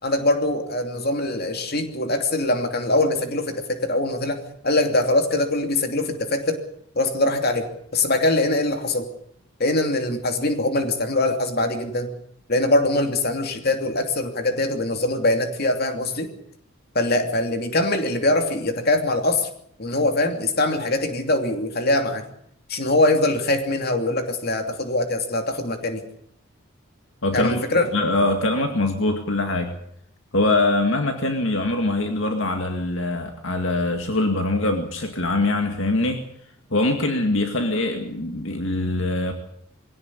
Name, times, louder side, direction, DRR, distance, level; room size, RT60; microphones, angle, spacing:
voice 1, 0.0-6.6 6.9-9.1 9.6-12.1 12.5-16.3 16.9-19.5 19.8-22.2 22.7-26.0 27.3-27.9, left 2 dB, 45° left, 6 dB, 2.8 m, -22 dB
voice 2, 27.2-27.6 27.9-29.7 30.3-36.2 36.7-39.3, left 2 dB, 60° left, 5 dB, 2.2 m, -23 dB
22.5 x 17.0 x 8.4 m, 0.69 s
head